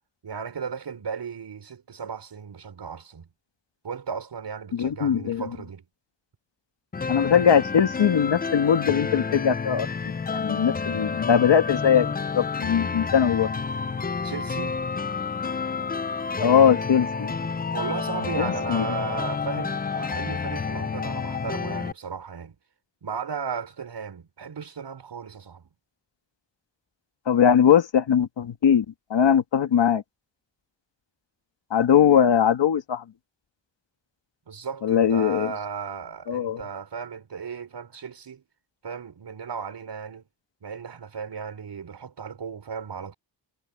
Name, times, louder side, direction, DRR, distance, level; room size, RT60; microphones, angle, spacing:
voice 1, 0.2-3.3 3.8-5.8 14.2-14.8 17.7-22.6 23.0-25.7 34.5-38.4 38.8-40.2 40.6-43.1, right 6 dB, 70° right, 4.8 m, -35 dB
voice 2, 4.7-5.4 7.1-13.5 16.4-17.3 18.4-18.9 27.3-28.8 29.1-30.0 31.7-33.0 34.8-35.5 36.3-36.6, left 8 dB, 75° left, 1.7 m, -21 dB
sound 1, 6.9-21.9, left 5 dB, 20° left, 0.4 m, -29 dB
wide cardioid pair, 145°, 43 cm